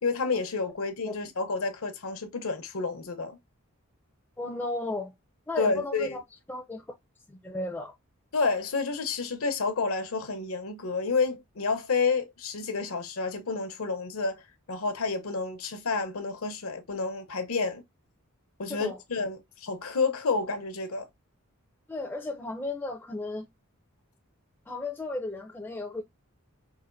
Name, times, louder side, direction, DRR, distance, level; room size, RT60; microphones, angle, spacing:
voice 1, 0.0-3.4 5.6-6.2 8.3-14.4 14.7-17.8 18.6-21.0, left 4 dB, 75° left, 0.8 m, -30 dB
voice 2, 4.4-5.1 5.5-6.2 6.5-6.8 7.3-7.9 18.7-19.0 21.9-23.5 24.7-26.0, left 2 dB, 10° left, 0.4 m, -34 dB
4.8 x 2.5 x 2.5 m
head